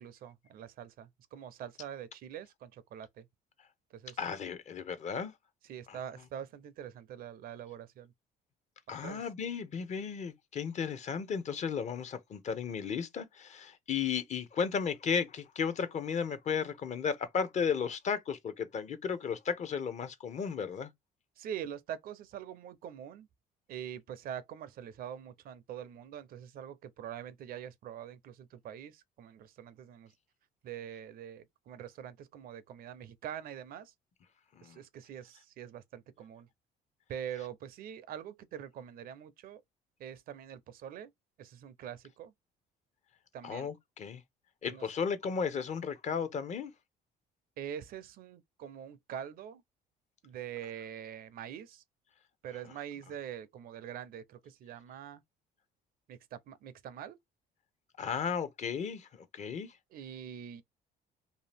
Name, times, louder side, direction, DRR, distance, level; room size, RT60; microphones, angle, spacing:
voice 1, 0.0-3.2 3.9-4.2 5.7-8.1 9.0-9.2 21.4-23.3 23.7-30.1 30.6-33.9 34.6-36.5 37.1-39.6 40.0-41.1 41.4-42.3 43.3-43.7 44.7-44.8 47.6-49.6 50.2-51.8 52.4-55.2 56.1-57.2 59.9-60.6, right 9 dB, 60° right, 0.5 m, -44 dB
voice 2, 4.2-5.3 5.9-6.0 8.9-20.9 34.5-34.8 43.4-44.2 44.6-46.7 52.6-52.7 58.0-59.7, left 6 dB, 45° left, 0.6 m, -34 dB
2.7 x 2.4 x 3.3 m
cardioid pair, 110°, 17 cm